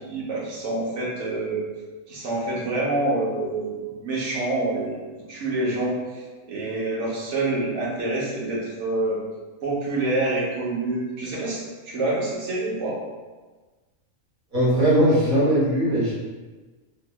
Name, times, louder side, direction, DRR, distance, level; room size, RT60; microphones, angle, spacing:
voice 1, 0.0-1.6 2.1-6.2 6.5-9.2 9.6-13.0, right 2 dB, 65° right, -5 dB, 1.1 m, -27 dB
voice 2, 14.5-16.1, equal, 40° right, -9 dB, 1.3 m, -19 dB
3.1 x 2.8 x 2.3 m, 1.3 s
omnidirectional pair, 1.4 m